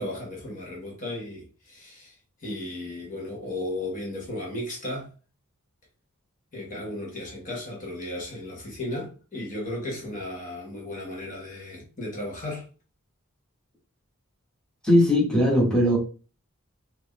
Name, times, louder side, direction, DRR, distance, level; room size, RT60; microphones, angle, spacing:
voice 1, 0.0-2.1 2.4-5.1 6.5-12.6, left 1 dB, 35° left, 1.4 m, -35 dB
voice 2, 14.8-16.0, equal, 5° left, 1.5 m, -19 dB
4.4 x 2.8 x 3.2 m
head